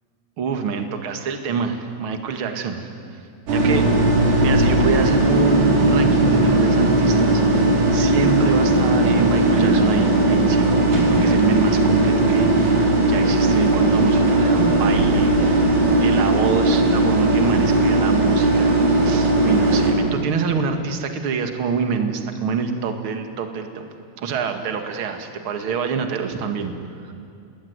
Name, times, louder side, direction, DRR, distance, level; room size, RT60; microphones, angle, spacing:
voice 1, 0.4-3.2 3.5-3.8 4.4-15.7 16.0-23.9 24.2-26.7 27.0-27.1, right 5 dB, 40° right, 6 dB, 2.3 m, -26 dB
sound 1, 3.5-19.9, right 2 dB, 60° right, 5.5 m, -17 dB
28.0 x 20.5 x 9.7 m, 2.5 s
omnidirectional pair, 4.2 m